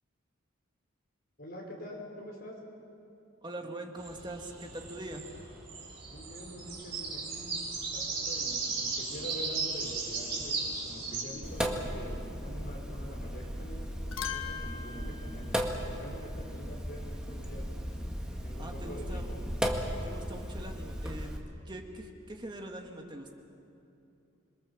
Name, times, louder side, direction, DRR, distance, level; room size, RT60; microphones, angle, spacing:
voice 1, 1.4-2.6 6.1-7.5 7.9-15.7 16.0-17.7 18.3-19.4, equal, 45° left, -2 dB, 5.6 m, -45 dB
voice 2, 3.4-5.2 18.6-19.3 20.0-21.3 21.6-23.3, right 1 dB, 20° right, 2 dB, 1.7 m, -42 dB
sound 1, 4.0-11.2, right 4 dB, 50° right, 7.0 m, -36 dB
Sink (filling or washing), 11.4-21.4, equal, 5° right, 1.7 m, -36 dB
sound 2, 13.6-13.7 13.9-16.5 18.9-19.9, left 9 dB, 75° left, 1.5 m, -43 dB
27.0 x 22.5 x 7.3 m, 2.7 s
head